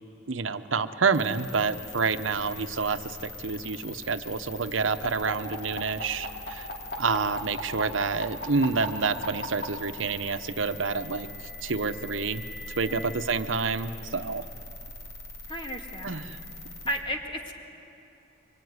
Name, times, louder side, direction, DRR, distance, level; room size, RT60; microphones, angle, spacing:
voice 1, 0.3-6.7 7.0-12.4 12.8-14.5 16.0-16.4, right 4 dB, 90° right, 9 dB, 0.9 m, -28 dB
sound 1, 1.1-17.0, left 2 dB, 85° left, 4.7 m, -43 dB
sound 2, 5.0-9.6 10.8-13.1, left 3 dB, 50° left, 3.5 m, -38 dB
voice 2, 15.5-16.2 16.9-17.5, equal, 25° left, 2 dB, 2.2 m, -33 dB
24.5 x 24.5 x 9.6 m, 2.8 s
head